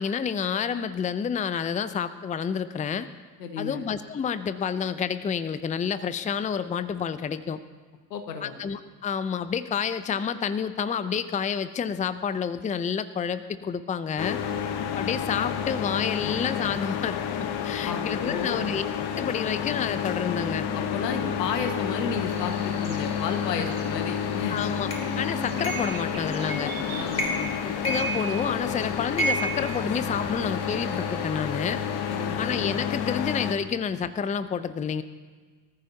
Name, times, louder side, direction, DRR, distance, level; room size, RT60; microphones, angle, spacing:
voice 1, 0.0-3.1 3.6-7.6 8.4-14.4 15.0-17.2 17.6-18.9 19.2-20.7 24.5-24.9 25.2-26.7 27.6-31.8 32.4-35.0, left 7 dB, 15° left, 14 dB, 0.6 m, -29 dB
voice 2, 3.4-3.9 8.1-8.6 17.9-18.7 20.7-24.6 26.9-27.7 32.1-32.5, left 6 dB, 80° left, 5 dB, 1.8 m, -33 dB
sound 1, 14.2-33.5, left 8 dB, 50° left, 1.4 m, -30 dB
Buzz, 22.3-32.3, right 4 dB, 85° right, 2.2 m, -43 dB
sound 2, 24.9-25.0 25.6-26.0 26.5-26.8 27.1-27.5 27.8-28.7 29.2-30.4, right 2 dB, 30° left, 3.1 m, -30 dB
24.5 x 14.5 x 2.9 m, 1.4 s
figure-of-eight pair, 65°, 49 cm